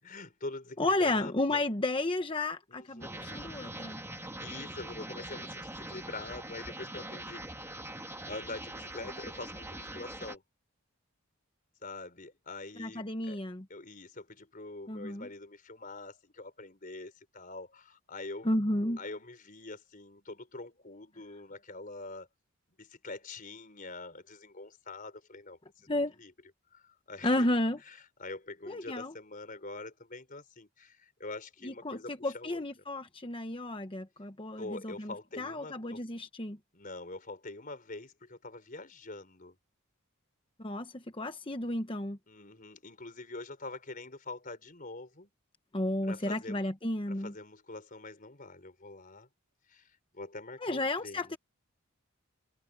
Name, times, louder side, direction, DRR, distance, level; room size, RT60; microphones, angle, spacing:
voice 1, 0.0-1.6 2.7-3.4 4.1-7.7 8.3-10.4 11.8-13.4 13.7-18.5 19.0-22.3 22.8-25.9 26.2-26.3 26.7-27.5 27.9-32.6 34.6-36.0 36.7-39.5 42.3-45.3 46.0-46.7 47.1-49.3 49.7-51.3, left 2 dB, 40° left, 4.5 m, -45 dB
voice 2, 0.8-4.0 12.8-13.7 14.9-15.3 18.4-19.0 25.9-26.1 27.2-27.8 28.7-29.1 31.6-36.6 40.6-42.2 45.7-47.3 50.6-51.4, left 1 dB, 25° left, 1.1 m, -32 dB
sound 1, 3.0-10.4, right 1 dB, 10° right, 2.1 m, -42 dB
head